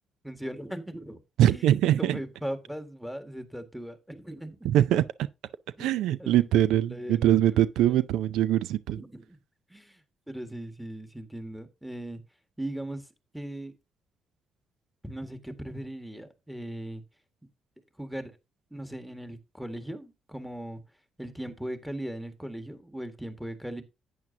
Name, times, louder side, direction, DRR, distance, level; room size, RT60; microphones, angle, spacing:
voice 1, 0.2-1.2 1.5-1.6 2.0-4.7 5.8-7.4 7.9-8.0 8.9-9.4 9.7-12.2 12.6-13.1 13.3-13.7 15.0-17.0 18.0-18.4 18.7-20.8 21.2-23.8, right 1 dB, ahead, 1.8 m, -38 dB
voice 2, 1.4-2.2 4.6-5.0 5.8-9.0, right 12 dB, 90° right, 0.4 m, -23 dB
11.0 x 8.9 x 2.8 m
cardioid pair, 90°, 0 cm